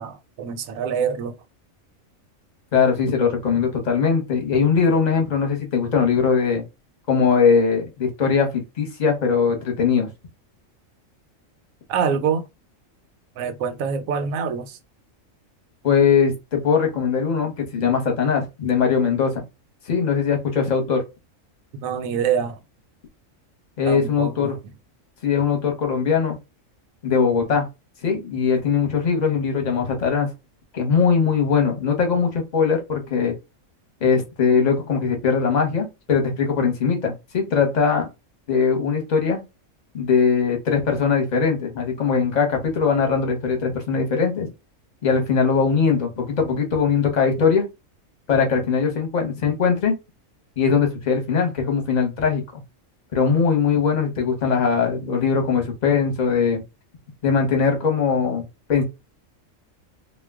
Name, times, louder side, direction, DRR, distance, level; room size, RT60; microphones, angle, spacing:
voice 1, 0.0-1.3 11.9-12.4 13.4-14.8 21.7-22.6 23.9-24.5, right 7 dB, 90° right, 1.0 m, -25 dB
voice 2, 2.7-6.6 7.1-10.1 15.8-19.4 19.9-21.0 23.8-24.5 25.2-26.4 27.0-27.7 28.0-30.3 30.7-33.4 34.0-38.1 38.5-39.4 39.9-44.5 45.0-47.7 48.3-49.9 50.6-52.6 53.1-56.6 57.2-58.8, left 6 dB, 40° left, 0.8 m, -20 dB
2.3 x 2.1 x 3.4 m
omnidirectional pair, 1.4 m